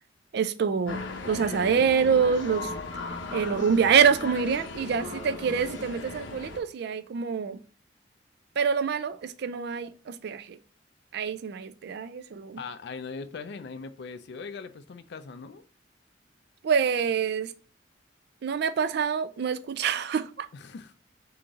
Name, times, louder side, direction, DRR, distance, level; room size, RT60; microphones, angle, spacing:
voice 1, 0.3-1.0 1.3-2.7 3.3-7.6 8.6-10.6 11.1-12.6 16.6-17.5 18.4-20.5, right 6 dB, 60° right, 0.3 m, -26 dB
sound 1, 0.9-6.6, left 3 dB, 85° left, 0.8 m, -37 dB
voice 2, 12.6-15.6 20.5-20.9, left 4 dB, 65° left, 0.4 m, -40 dB
3.8 x 2.9 x 3.6 m
head